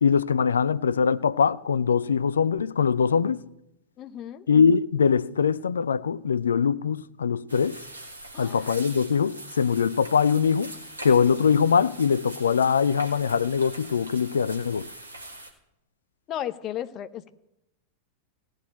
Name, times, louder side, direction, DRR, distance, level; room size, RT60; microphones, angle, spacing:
voice 1, 0.0-3.5 4.5-7.8 8.4-10.7 11.0-14.9, left 6 dB, 70° left, 0.4 m, -22 dB
voice 2, 4.0-4.5 8.3-8.7 16.3-17.3, left 11 dB, 35° left, 0.8 m, -34 dB
sound 1, 7.5-15.5, right 1 dB, 80° right, 2.2 m, -42 dB
16.5 x 6.5 x 8.8 m
figure-of-eight pair, 90°, 0 cm